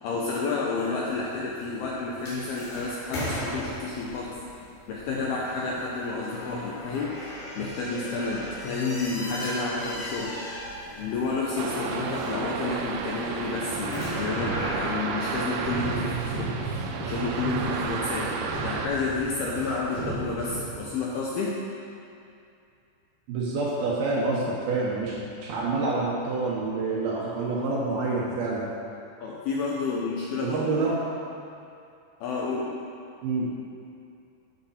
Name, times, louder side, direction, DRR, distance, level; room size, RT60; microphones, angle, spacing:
voice 1, 0.0-4.4 4.9-7.2 7.6-10.3 11.0-18.4 18.6-21.6 29.2-30.6 32.2-32.8, left 3 dB, 75° left, -4 dB, 2.3 m, -30 dB
sound 1, 1.0-16.4, equal, 55° left, 4.0 m, -38 dB
sound 2, 11.6-18.9, right 5 dB, 90° right, 2.2 m, -32 dB
sound 3, 15.6-21.1, right 3 dB, 55° right, 4.5 m, -35 dB
voice 2, 23.3-28.7 30.4-31.0 33.2-33.5, right 3 dB, 70° right, -5 dB, 2.5 m, -27 dB
11.5 x 8.5 x 4.3 m, 2.5 s
omnidirectional pair, 5.4 m